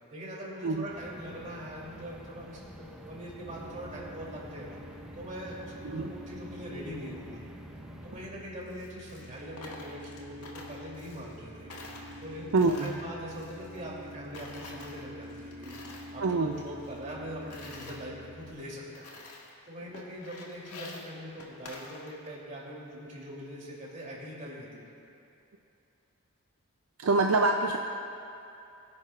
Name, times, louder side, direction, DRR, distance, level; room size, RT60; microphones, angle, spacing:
voice 1, 0.1-4.8 5.2-7.4 8.1-12.5 12.8-19.1 19.6-24.7, equal, 35° right, -5 dB, 3.1 m, -42 dB
sound 1, 0.9-8.3, equal, 5° right, 0.7 m, -48 dB
sound 2, 3.4-18.5, equal, 85° right, 3.0 m, -47 dB
Coin (dropping), 8.6-11.4 11.7-14.1 14.3-16.2 16.5-18.0 18.5-18.6 18.9-19.6 19.9-22.4, left 2 dB, 80° left, 1.6 m, -48 dB
voice 2, 12.5-13.0 16.2-16.6 27.0-27.8, right 3 dB, 65° right, 3 dB, 0.5 m, -25 dB
22.5 x 10.5 x 2.5 m, 2.8 s
head